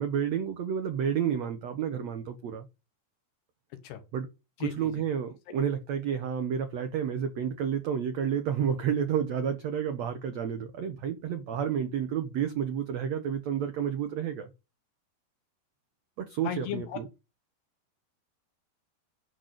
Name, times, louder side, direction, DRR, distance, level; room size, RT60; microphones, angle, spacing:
voice 1, 0.0-2.6 4.1-4.3 4.6-14.5 16.2-17.0, right 8 dB, 80° right, 1.5 m, -30 dB
voice 2, 4.6-5.0 16.4-17.0, left 10 dB, 80° left, 3.6 m, -36 dB
10.0 x 4.1 x 6.5 m
omnidirectional pair, 4.6 m